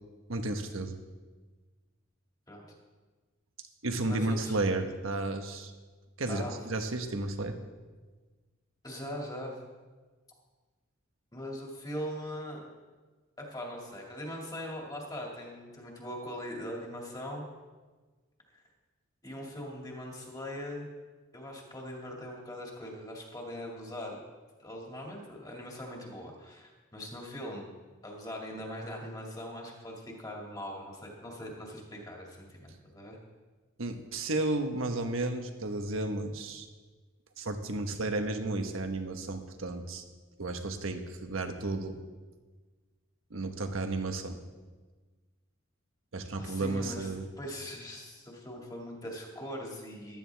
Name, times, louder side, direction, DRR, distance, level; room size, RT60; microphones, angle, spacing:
voice 1, 0.3-1.0 3.8-5.7 6.2-7.6 33.8-36.7 37.4-40.0 40.4-42.0 43.3-44.4 46.1-47.3, right 2 dB, 75° right, 6 dB, 1.2 m, -33 dB
voice 2, 4.1-4.6 6.3-6.5 8.8-9.6 11.3-12.6 13.4-17.5 18.5-18.6 19.2-20.9 21.3-24.2 24.6-27.7 28.0-33.2 46.4-47.1 47.4-50.2, equal, 20° left, -1 dB, 2.3 m, -41 dB
15.0 x 12.5 x 3.5 m, 1.3 s
head